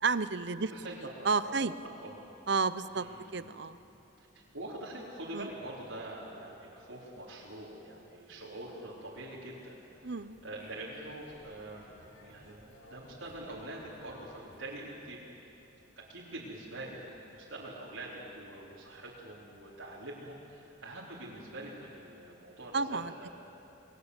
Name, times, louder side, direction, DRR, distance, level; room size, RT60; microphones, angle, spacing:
voice 1, 0.0-0.7 1.2-1.7 2.5-3.1 3.3-3.8 5.3-5.5 10.0-10.4 22.7-23.1, right 4 dB, 55° right, 14 dB, 0.8 m, -31 dB
voice 2, 0.7-1.5 1.8-2.3 2.9-3.5 4.2-4.3 4.5-10.1 10.4-11.9 12.2-15.2 16.0-17.0 17.3-23.3, right 1 dB, 80° right, -6 dB, 4.1 m, -45 dB
sound 1, 9.4-14.8, left 1 dB, 60° left, 4.3 m, -58 dB
29.5 x 21.0 x 8.3 m, 3.0 s
head